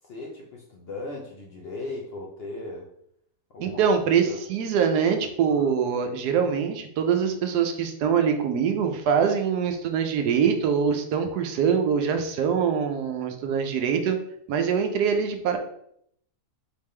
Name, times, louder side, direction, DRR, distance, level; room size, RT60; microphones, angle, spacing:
voice 1, 0.0-2.9 3.5-3.8 4.2-4.4 5.5-5.7, left 2 dB, 55° left, -1 dB, 0.7 m, -37 dB
voice 2, 3.6-14.2 14.5-15.6, right 7 dB, 90° right, 6 dB, 1.2 m, -24 dB
4.0 x 3.5 x 3.2 m, 0.71 s
omnidirectional pair, 1.7 m